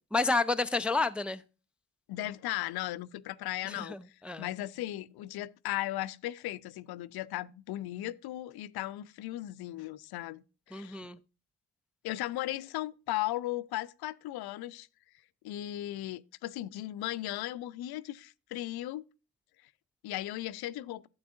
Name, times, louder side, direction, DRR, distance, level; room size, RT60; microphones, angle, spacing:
voice 1, 0.1-1.4 3.7-4.5 10.7-11.2, left 3 dB, 5° right, 0.4 m, -30 dB
voice 2, 2.1-4.0 4.4-11.1 12.0-14.9 15.4-19.0 20.0-21.0, left 15 dB, 55° left, 0.6 m, -36 dB
12.5 x 8.0 x 2.5 m
figure-of-eight pair, 40°, 45 cm